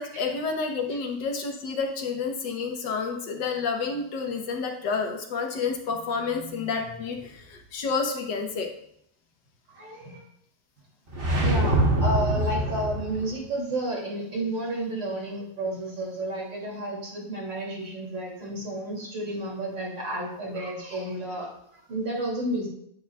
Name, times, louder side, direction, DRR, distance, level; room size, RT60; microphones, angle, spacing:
voice 1, 0.0-8.7, left 5 dB, 80° left, 3 dB, 1.7 m, -29 dB
voice 2, 9.7-10.2 11.4-22.7, right 1 dB, 80° right, -3 dB, 3.5 m, -31 dB
sound 1, 11.1-13.3, right 1 dB, 35° right, 1.4 m, -24 dB
10.0 x 8.5 x 2.4 m, 0.72 s
omnidirectional pair, 1.9 m